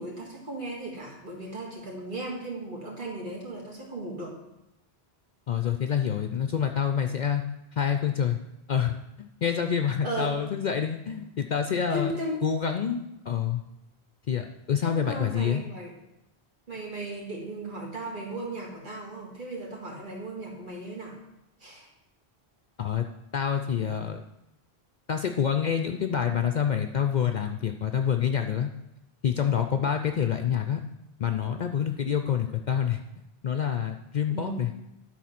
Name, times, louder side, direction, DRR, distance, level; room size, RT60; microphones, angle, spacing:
voice 1, 0.0-4.4 10.0-10.4 11.9-12.5 14.8-15.9 16.7-21.2 21.6-21.9 34.3-34.6, right 1 dB, 50° right, -1 dB, 2.0 m, -36 dB
voice 2, 5.5-7.4 7.7-8.4 8.7-12.1 12.4-13.6 14.3-15.6 22.8-23.0 23.3-24.2 25.1-28.7 29.2-30.8 31.2-33.0 33.4-34.7, left 8 dB, 55° left, 6 dB, 0.6 m, -27 dB
11.0 x 4.2 x 5.8 m, 0.88 s
omnidirectional pair, 1.1 m